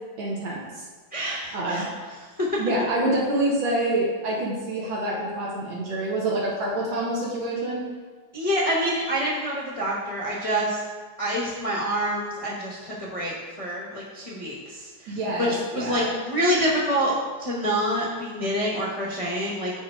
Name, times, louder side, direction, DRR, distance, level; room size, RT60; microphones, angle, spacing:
voice 1, 0.2-0.9 1.5-1.9 2.6-7.9 15.1-16.1, right 1 dB, 75° right, -4 dB, 1.8 m, -27 dB
voice 2, 1.1-1.9 2.5-2.6 8.3-10.8 11.2-17.1 17.4-19.7, equal, 30° left, -5 dB, 0.6 m, -27 dB
6.5 x 4.7 x 4.5 m, 1.4 s
omnidirectional pair, 2.2 m